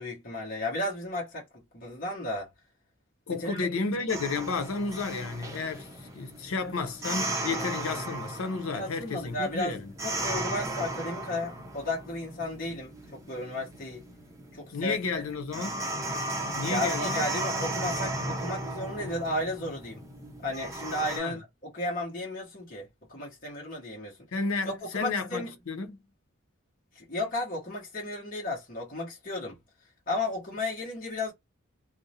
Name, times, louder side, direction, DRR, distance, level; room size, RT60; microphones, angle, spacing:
voice 1, 0.0-2.5 3.4-3.7 8.7-14.0 14.5-15.2 15.6-15.7 16.7-20.0 20.4-24.2 24.9-25.5 26.9-29.6 30.1-31.3, left 1 dB, 40° left, 0.9 m, -34 dB
voice 2, 3.3-5.9 6.1-9.9 14.7-15.9 16.6-17.2 21.2-21.4 24.3-26.0, left 4 dB, 85° left, 0.6 m, -32 dB
sound 1, 4.1-21.2, right 1 dB, 15° right, 0.6 m, -36 dB
2.4 x 2.0 x 2.7 m
head